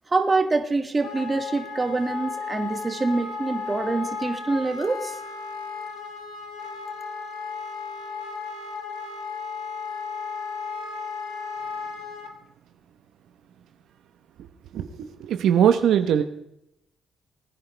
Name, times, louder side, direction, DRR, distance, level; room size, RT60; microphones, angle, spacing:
voice 1, 0.1-5.2, right 3 dB, 25° right, 6 dB, 2.0 m, -25 dB
Wind instrument woodwind instrument, 1.0-12.3, left 5 dB, 85° left, 1.9 m, -34 dB
voice 2, 14.7-16.2, right 9 dB, 75° right, 8 dB, 1.0 m, -21 dB
21.5 x 9.9 x 3.4 m, 0.80 s
cardioid pair, 90°, 0 cm